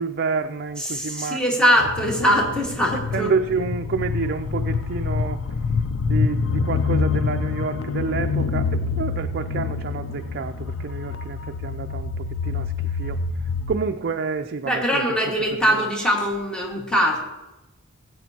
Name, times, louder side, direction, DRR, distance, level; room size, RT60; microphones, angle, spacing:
voice 1, 0.0-1.9 3.1-5.4 6.0-13.2 13.7-15.0 15.7-15.9, right 4 dB, 50° right, 6 dB, 0.4 m, -29 dB
voice 2, 0.8-3.3 14.6-17.2, equal, 5° left, -1 dB, 1.7 m, -22 dB
sound 1, 1.8-13.7, left 4 dB, 75° left, 0.5 m, -26 dB
18.5 x 8.2 x 2.8 m, 1.1 s
head